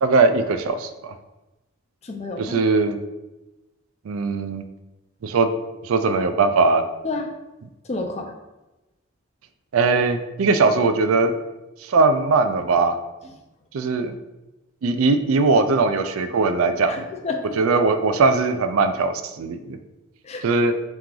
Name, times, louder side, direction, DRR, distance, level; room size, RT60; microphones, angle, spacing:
voice 1, 0.0-1.1 2.4-3.0 4.1-4.6 5.2-5.5 5.8-6.8 9.7-11.3 11.8-13.0 13.7-14.1 14.8-17.0 17.6-19.8 20.4-20.8, right 3 dB, 90° right, 9 dB, 0.4 m, -20 dB
voice 2, 2.0-2.6 7.0-7.3 7.9-8.3 16.9-17.6 20.2-20.4, left 3 dB, 30° left, 4 dB, 0.4 m, -30 dB
3.8 x 3.0 x 3.7 m, 1.0 s
head